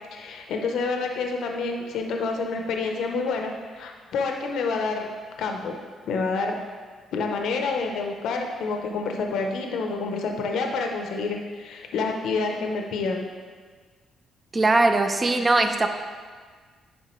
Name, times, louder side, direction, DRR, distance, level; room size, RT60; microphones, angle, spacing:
voice 1, 0.1-5.1 5.4-5.8 6.1-6.6 7.1-13.3, left 4 dB, 80° left, 2 dB, 0.7 m, -28 dB
voice 2, 14.5-15.9, right 2 dB, 30° right, 6 dB, 0.6 m, -20 dB
10.5 x 3.7 x 3.1 m, 1.5 s
cardioid pair, 90°, 0 cm